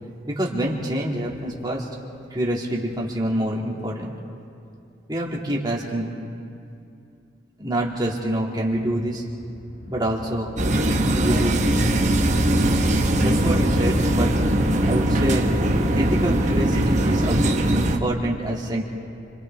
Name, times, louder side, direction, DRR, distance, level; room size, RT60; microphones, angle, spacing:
voice 1, 0.3-1.9 2.3-4.1 5.1-6.1 7.6-9.2 9.9-10.6 11.1-11.9 13.2-14.3 14.8-15.5 15.9-18.8, right 1 dB, 20° right, -3 dB, 2.5 m, -26 dB
sound 1, 9.1-15.9, equal, 75° left, 1.7 m, -32 dB
sound 2, 10.6-18.0, right 1 dB, 40° right, 1.2 m, -20 dB
29.5 x 24.5 x 3.6 m, 2.6 s
head